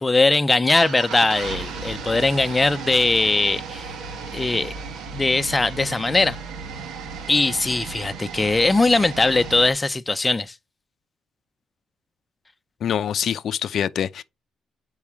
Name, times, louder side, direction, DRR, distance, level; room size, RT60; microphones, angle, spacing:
voice 1, 0.0-3.9 4.3-4.7 5.1-6.4 7.3-10.5, left 3 dB, 20° left, 0.6 m, -20 dB
sound 1, 0.8-9.7, right 5 dB, 80° right, 1.5 m, -35 dB
voice 2, 12.8-14.2, left 9 dB, 65° left, 0.5 m, -25 dB
7.1 x 4.7 x 4.8 m
cardioid pair, 90°, 0 cm